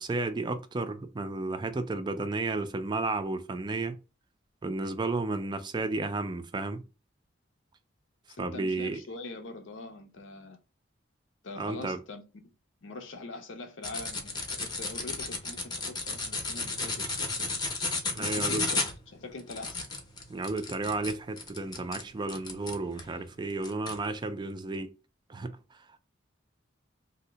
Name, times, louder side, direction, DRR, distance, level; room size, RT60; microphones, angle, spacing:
voice 1, 0.0-4.0 4.6-6.8 8.4-9.0 11.6-12.0 18.1-18.7 20.3-24.9 25.3-26.0, right 3 dB, 25° right, 0.3 m, -32 dB
voice 2, 8.3-10.6 11.4-12.2 12.8-17.6 18.2-19.8, left 3 dB, 80° left, 0.6 m, -43 dB
sound 1, 13.8-23.1 23.6-24.0, left 3 dB, 20° left, 0.6 m, -33 dB
2.7 x 2.1 x 3.8 m
head